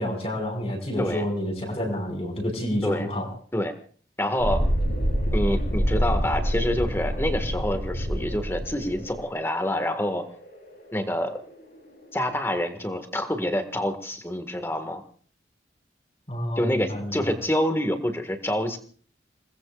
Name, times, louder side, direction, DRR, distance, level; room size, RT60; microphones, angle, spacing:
voice 1, 0.0-3.3 16.3-17.3, equal, 35° left, 2 dB, 5.7 m, -29 dB
voice 2, 4.2-4.7 5.3-10.2 10.9-11.4 12.1-15.0 16.5-18.8, left 1 dB, 15° left, 7 dB, 1.8 m, -27 dB
Thunderstorm, 4.4-11.8, equal, 60° left, 7.5 m, -27 dB
27.5 x 20.5 x 2.5 m, 0.42 s
head